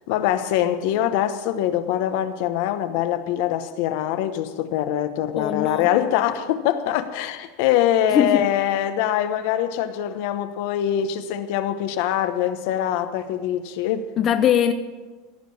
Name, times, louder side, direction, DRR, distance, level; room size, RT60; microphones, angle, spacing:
voice 1, 0.0-14.1, left 11 dB, 65° left, 0.9 m, -23 dB
voice 2, 5.4-5.9 8.1-8.4 14.2-14.7, left 9 dB, 30° left, 0.5 m, -20 dB
15.5 x 5.2 x 9.4 m
supercardioid pair, 150°, 0 cm